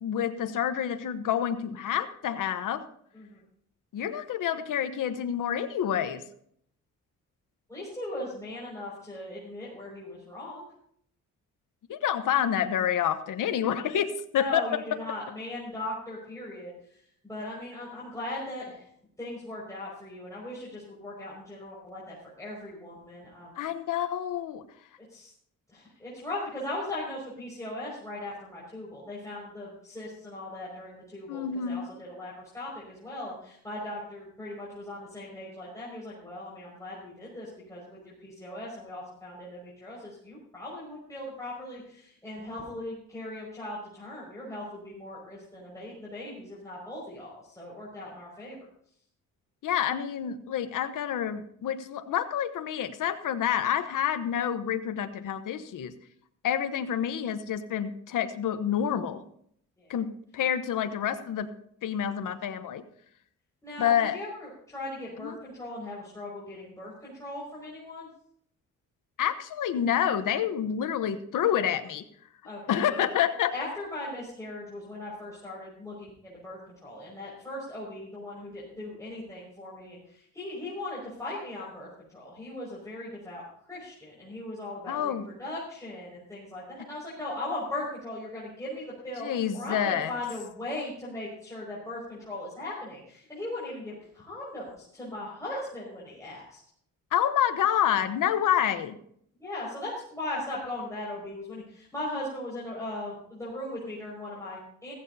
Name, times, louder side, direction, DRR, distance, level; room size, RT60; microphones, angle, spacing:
voice 1, 0.0-2.8 3.9-6.2 11.9-14.6 23.6-24.6 31.3-31.9 49.6-55.9 56.4-59.2 59.9-61.5 61.8-62.8 63.8-64.2 65.2-65.3 69.2-72.0 72.7-73.5 84.9-85.2 89.2-90.1 97.1-99.0, left 9 dB, 75° left, 9 dB, 1.1 m, -28 dB
voice 2, 7.7-10.7 14.4-18.9 19.2-23.6 25.1-25.3 25.7-48.6 59.8-59.9 63.6-68.1 72.4-73.0 73.5-96.6 99.4-104.9, left 1 dB, 10° left, -7 dB, 5.7 m, -39 dB
15.5 x 15.5 x 2.8 m, 0.66 s
cardioid pair, 110°, 32 cm